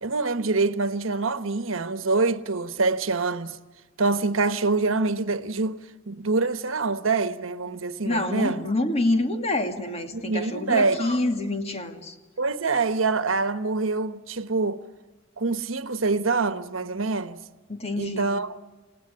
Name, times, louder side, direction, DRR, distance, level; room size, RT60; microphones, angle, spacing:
voice 1, 0.0-3.6 4.0-8.7 10.1-11.0 12.4-14.8 15.4-17.4 18.0-18.6, right 3 dB, 85° right, 1.2 m, -25 dB
voice 2, 8.0-12.2 17.7-18.3, left 2 dB, 30° left, 2.3 m, -27 dB
29.0 x 18.5 x 10.0 m
head